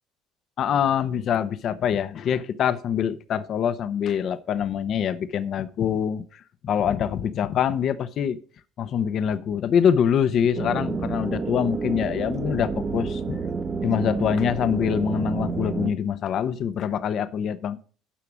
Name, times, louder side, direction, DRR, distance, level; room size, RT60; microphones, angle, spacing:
voice 1, 0.6-6.2 6.6-8.4 8.8-13.4 13.8-17.8, left 8 dB, 55° left, 0.9 m, -24 dB
sound 1, 10.5-15.9, right 4 dB, 35° right, 1.2 m, -29 dB
10.0 x 6.0 x 6.2 m
hypercardioid pair, 70°, 0 cm